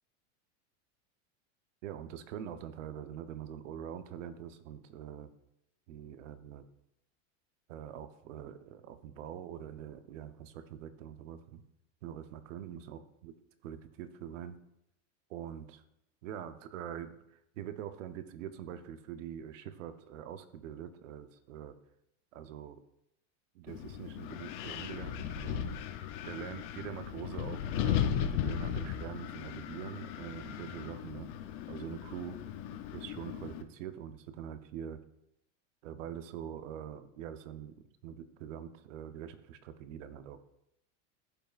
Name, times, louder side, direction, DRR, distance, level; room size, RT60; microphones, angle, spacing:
voice 1, 1.8-5.3 5.9-6.6 7.7-11.6 12.0-13.3 13.6-14.6 15.3-15.8 16.2-21.8 22.3-22.8 23.5-25.7 26.2-31.3 31.7-32.4 32.9-35.0 35.8-40.4, right 9 dB, 85° right, 10 dB, 0.8 m, -44 dB
Wind, 23.7-33.6, left 9 dB, 45° left, 0.6 m, -36 dB
13.0 x 5.4 x 2.4 m, 0.81 s
supercardioid pair, 165°, 37 cm